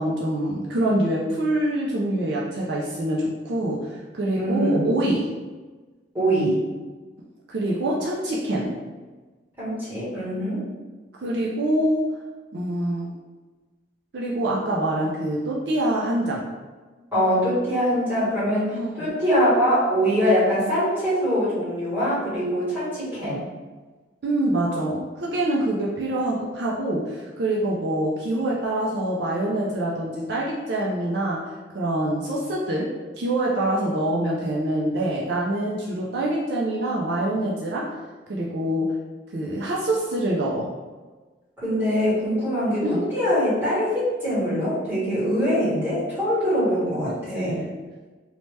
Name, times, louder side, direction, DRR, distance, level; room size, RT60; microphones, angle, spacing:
voice 1, 0.0-5.3 7.5-8.7 11.2-12.0 12.5-13.2 14.1-16.4 18.7-19.1 24.2-31.4 31.7-32.9 33.2-37.9 38.3-38.9 39.3-40.7 42.8-43.0 47.0-47.7, right 1 dB, 60° right, -4 dB, 0.4 m, -25 dB
voice 2, 4.3-4.8 6.1-6.6 9.6-10.6 17.1-23.4 41.6-47.6, equal, 10° right, -10 dB, 1.3 m, -23 dB
2.7 x 2.2 x 3.1 m, 1.3 s
head